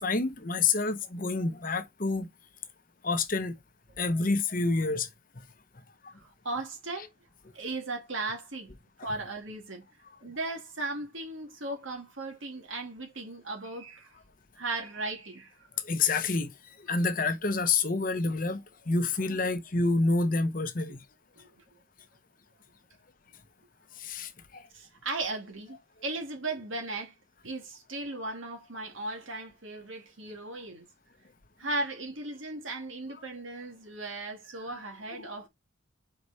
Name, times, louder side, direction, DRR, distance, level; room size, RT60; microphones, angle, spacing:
voice 1, 0.0-2.3 3.0-3.5 4.0-5.1 5.4-5.5 6.0-6.1 15.8-21.0 24.0-24.7, left 3 dB, 40° left, 0.9 m, -28 dB
voice 2, 6.1-7.1 7.5-8.7 9.0-9.9 10.2-14.1 14.6-15.7 19.2-19.3 21.4-21.5 24.7-27.1 27.4-30.9 31.6-35.5, right 2 dB, 75° right, 2.5 m, -37 dB
5.9 x 4.9 x 4.2 m
head